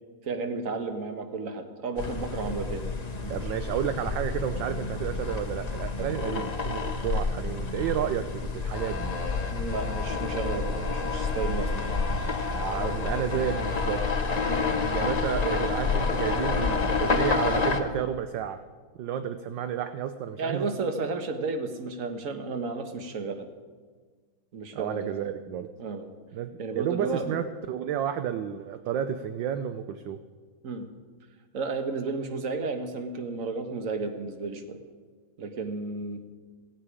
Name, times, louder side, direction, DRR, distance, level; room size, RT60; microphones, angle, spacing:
voice 1, 0.2-2.8 3.1-3.5 6.3-6.4 9.5-12.0 14.4-14.6 20.4-23.4 24.5-25.3 25.8-26.1 26.6-27.4 30.6-30.9 31.5-34.8 35.4-36.2, right 4 dB, 45° right, 6 dB, 1.6 m, -33 dB
sound 1, 2.0-17.8, left 4 dB, 35° left, 0.6 m, -29 dB
voice 2, 3.3-9.2 12.5-14.0 14.6-18.6 19.0-20.7 24.7-25.7 26.3-30.2, right 9 dB, 70° right, 9 dB, 1.3 m, -31 dB
17.0 x 16.5 x 5.0 m, 1.5 s
omnidirectional pair, 2.3 m